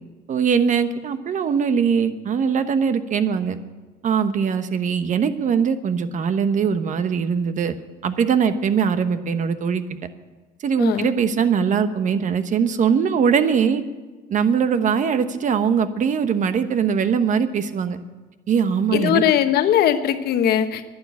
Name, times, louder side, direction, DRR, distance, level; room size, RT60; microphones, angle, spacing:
voice 1, 0.3-3.6 4.0-7.7 8.0-9.8 10.6-13.8 14.3-18.0 18.5-19.2, right 6 dB, 50° right, 10 dB, 1.1 m, -21 dB
voice 2, 10.8-11.1 18.9-20.9, left 10 dB, 70° left, 9 dB, 1.1 m, -20 dB
11.5 x 9.7 x 9.4 m, 1.3 s
cardioid pair, 110°, 17 cm